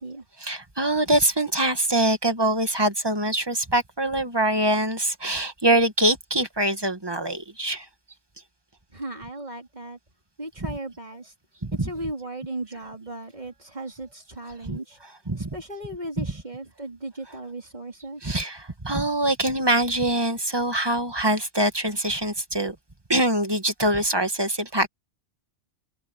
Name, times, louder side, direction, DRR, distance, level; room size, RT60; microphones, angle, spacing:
voice 1, 0.4-7.9 10.6-10.8 11.6-11.9 14.6-15.6 16.2-16.4 17.3-17.4 18.2-22.8 23.1-24.9, right 1 dB, 20° right, 1.8 m, -24 dB
voice 2, 8.9-10.0 10.4-11.3 11.8-15.0 15.4-18.3, right 1 dB, 40° right, 3.7 m, -36 dB
omnidirectional pair, 1.1 m